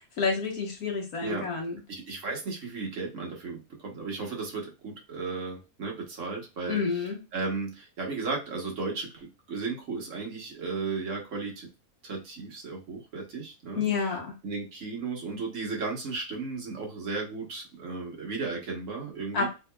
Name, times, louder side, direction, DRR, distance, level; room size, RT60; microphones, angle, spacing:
voice 1, 0.2-1.8 6.7-7.2 13.8-14.3 19.3-19.5, left 5 dB, 90° left, 0 dB, 1.7 m, -29 dB
voice 2, 1.9-11.7 12.0-14.1 14.4-19.5, right 4 dB, 60° right, 0 dB, 1.4 m, -35 dB
4.0 x 2.8 x 2.2 m, 0.28 s
omnidirectional pair, 1.5 m